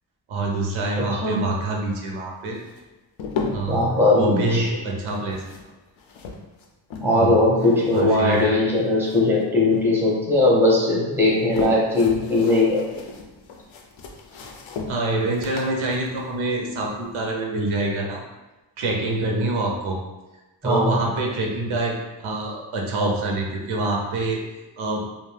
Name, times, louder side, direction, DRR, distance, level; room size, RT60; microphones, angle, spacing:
voice 1, 0.3-2.6 3.5-3.8 4.1-5.4 7.1-7.4 7.9-8.6 14.9-18.2 18.8-20.0 20.6-24.4 24.8-25.0, right 2 dB, 85° right, 0 dB, 0.7 m, -26 dB
sound 1, 2.6-3.9 5.0-7.3 7.6-9.4 9.7-10.6 11.1-17.2, left 4 dB, 75° left, 0.5 m, -36 dB
voice 2, 3.7-4.7 7.0-12.8 20.6-21.0, left 2 dB, 5° right, -4 dB, 0.6 m, -19 dB
2.5 x 2.1 x 3.2 m, 1.1 s
wide cardioid pair, 115°, 47 cm